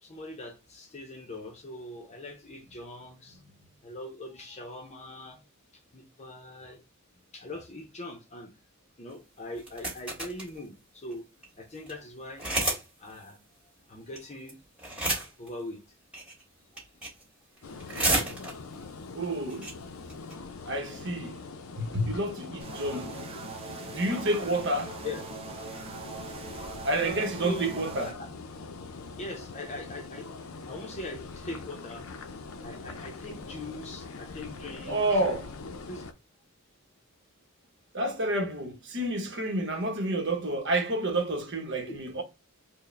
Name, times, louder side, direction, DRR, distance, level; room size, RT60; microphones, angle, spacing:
voice 1, 0.0-3.4 3.8-5.4 5.9-6.8 7.3-8.5 9.0-11.3 11.6-14.6 15.4-15.8 16.7-17.1 25.0-25.2 27.0-27.7 28.1-28.3 29.2-30.3 30.7-32.1 32.6-35.4 35.9-36.1 41.8-42.0, left 1 dB, 30° left, 0.6 m, -41 dB
sound 1, 9.6-10.5 11.1-11.2 11.4-11.5 11.8-11.9 12.4-12.8 13.1-13.2 14.2-14.5 14.8-15.5 16.1-16.4 16.8-17.2 17.6-18.7 19.2-19.3 19.5-19.7 20.1-20.3, right 1 dB, 5° right, 1.7 m, -30 dB
sound 2, 17.6-36.1, left 4 dB, 85° left, 0.5 m, -43 dB
voice 2, 19.1-19.7 20.6-21.4 21.8-23.3 23.9-25.0 26.8-28.1 34.8-35.5 37.9-42.2, right 1 dB, 60° right, 0.9 m, -29 dB
sound 3, 22.6-28.1, right 6 dB, 30° right, 0.5 m, -42 dB
4.6 x 2.1 x 3.2 m
head